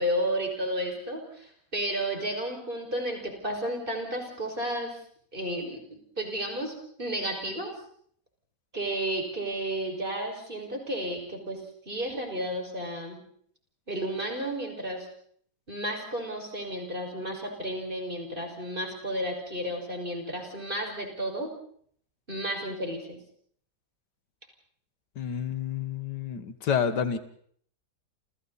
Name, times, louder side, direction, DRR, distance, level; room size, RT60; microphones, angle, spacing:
voice 1, 0.0-5.0 5.3-7.7 8.7-11.6 11.9-13.2 13.9-15.1 15.7-21.5 22.3-23.2, right 1 dB, 30° right, 2 dB, 5.9 m, -32 dB
voice 2, 25.2-27.2, left 7 dB, 80° left, 10 dB, 2.0 m, -29 dB
29.5 x 29.0 x 4.2 m, 0.62 s
omnidirectional pair, 1.8 m